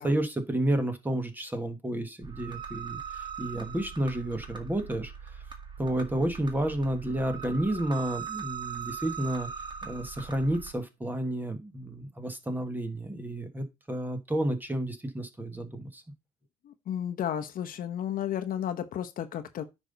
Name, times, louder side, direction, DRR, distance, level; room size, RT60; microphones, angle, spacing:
voice 1, 0.0-5.1 5.8-9.5 9.8-16.0, right 1 dB, 10° right, 1.5 m, -31 dB
sound 1, 2.2-10.7, right 7 dB, 25° right, 1.9 m, -40 dB
voice 2, 16.6-19.6, left 10 dB, 55° left, 0.9 m, -33 dB
9.4 x 5.5 x 4.0 m
cardioid pair, 110°, 17 cm